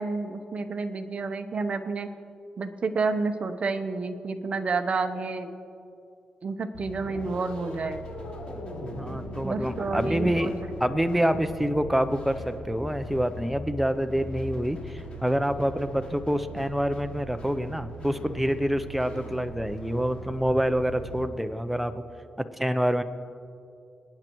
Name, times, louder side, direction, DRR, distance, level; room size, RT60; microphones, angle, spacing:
voice 1, 0.0-2.1 2.6-5.5 6.4-8.0 9.4-10.5, right 4 dB, 45° right, 7 dB, 0.8 m, -30 dB
sound 1, 6.7-21.2, right 1 dB, 40° left, 2.9 m, -40 dB
sound 2, 7.0-11.8, left 2 dB, 75° left, 2.2 m, -40 dB
voice 2, 9.0-10.5 10.8-22.0 22.6-23.0, equal, 5° right, 9 dB, 0.6 m, -27 dB
26.5 x 9.2 x 3.0 m, 2.5 s
cardioid pair, 115°, 3 cm